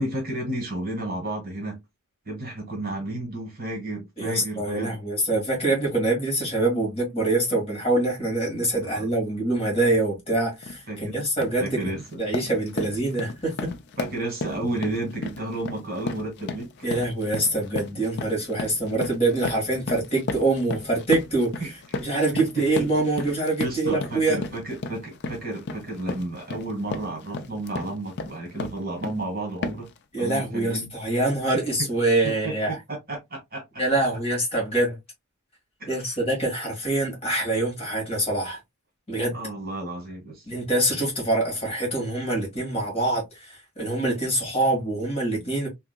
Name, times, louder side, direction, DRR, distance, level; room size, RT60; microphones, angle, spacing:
voice 1, 0.0-1.8 2.2-5.0 8.8-9.1 10.9-11.2 11.6-12.2 14.0-16.7 21.6-21.7 23.6-29.9 30.2-30.9 32.4-33.8 35.8-36.2 39.3-40.5, right 1 dB, 45° right, 1.4 m, -32 dB
voice 2, 4.2-11.9 12.2-13.7 16.8-21.7 22.0-24.4 30.1-32.7 33.8-35.0 35.9-38.6 39.1-39.3 40.5-45.7, right 2 dB, 25° left, 1.7 m, -25 dB
sound 1, 10.6-10.8 11.2-11.6 12.0-29.3 29.6-30.0, left 3 dB, 50° left, 0.4 m, -34 dB
3.5 x 2.9 x 2.2 m
head